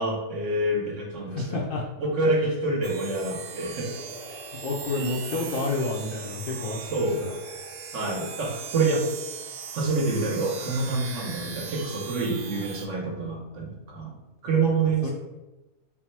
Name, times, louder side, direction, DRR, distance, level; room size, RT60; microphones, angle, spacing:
voice 1, 0.0-1.7 2.0-3.9 6.8-7.2 7.9-9.1 9.7-14.2 14.4-15.1, right 3 dB, 60° right, 0 dB, 1.1 m, -27 dB
voice 2, 1.3-1.8 2.2-2.3 4.6-6.8 7.2-7.3 15.0-15.1, left 3 dB, 65° left, -1 dB, 0.5 m, -29 dB
sound 1, 2.8-12.9, right 6 dB, 85° right, 1.1 m, -39 dB
3.8 x 2.1 x 4.3 m, 1.0 s
omnidirectional pair, 1.5 m